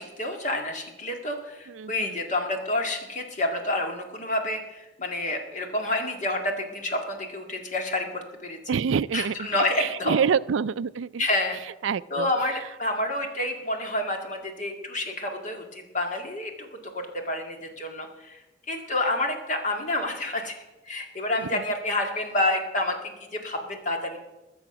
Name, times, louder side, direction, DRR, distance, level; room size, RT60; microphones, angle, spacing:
voice 1, 0.0-8.6 9.1-10.2 11.2-11.6 12.1-18.4 18.7-20.6 20.8-24.2, left 1 dB, 40° left, 3 dB, 1.9 m, -29 dB
voice 2, 1.7-2.2 8.7-9.5 9.8-11.2 11.8-12.3 21.5-21.6, right 6 dB, 80° right, 18 dB, 0.4 m, -27 dB
20.5 x 7.1 x 6.0 m, 1.0 s
head